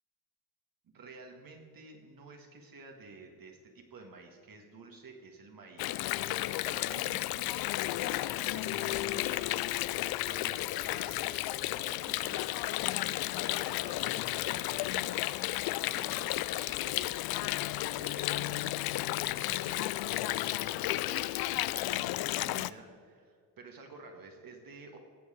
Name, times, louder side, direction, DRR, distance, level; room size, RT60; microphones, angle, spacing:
voice 1, 0.8-6.0 6.6-7.6 8.0-11.4 11.7-13.0 13.3-15.6 15.9-17.2 17.8-18.8 19.3-25.0, right 3 dB, 45° right, 2 dB, 1.8 m, -51 dB
Water, 5.8-22.7, left 16 dB, 55° left, 0.5 m, -33 dB
18.5 x 7.1 x 5.0 m, 2.1 s
hypercardioid pair, 60°, 47 cm